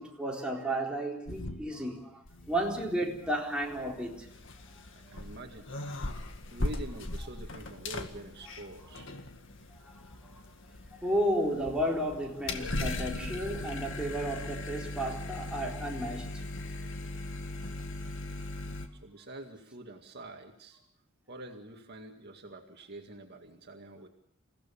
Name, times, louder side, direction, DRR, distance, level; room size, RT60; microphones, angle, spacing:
voice 1, 0.0-4.3 5.1-5.2 8.8-9.0 9.8-10.4 11.0-16.4, right 1 dB, 5° right, 4.1 m, -33 dB
sound 1, 1.3-2.0 2.3-18.9, left 2 dB, 65° left, 1.9 m, -39 dB
voice 2, 4.9-5.7 6.5-9.1 19.0-20.8 21.3-24.1, right 2 dB, 55° right, 2.1 m, -46 dB
28.0 x 16.5 x 7.1 m
head